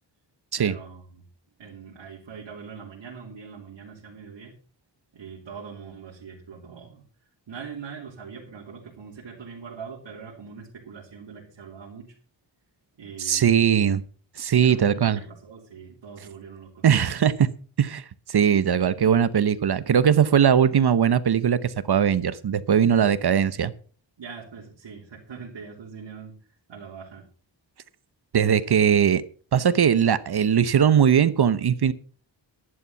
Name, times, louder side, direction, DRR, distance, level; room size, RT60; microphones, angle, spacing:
voice 1, 0.6-1.2 1.6-4.6 5.1-7.0 7.5-12.2 13.0-13.7 14.6-16.9 24.2-27.3, right 6 dB, 85° right, 3.5 m, -42 dB
voice 2, 13.2-14.0 14.4-15.2 16.8-17.5 17.8-23.7 28.3-29.2 29.5-31.9, right 8 dB, 60° right, 0.9 m, -20 dB
11.5 x 11.0 x 5.7 m
wide cardioid pair, 150°, 45 cm